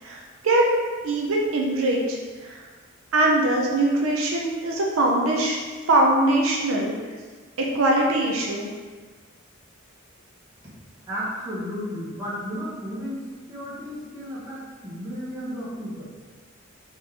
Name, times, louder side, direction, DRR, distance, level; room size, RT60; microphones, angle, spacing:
voice 1, 0.0-2.2 2.4-2.6 3.1-5.6 5.9-6.9 7.6-8.7, right 1 dB, 80° right, -1 dB, 0.6 m, -22 dB
voice 2, 11.1-16.1, equal, 15° right, -9 dB, 1.2 m, -33 dB
4.0 x 3.1 x 3.4 m, 1.4 s
head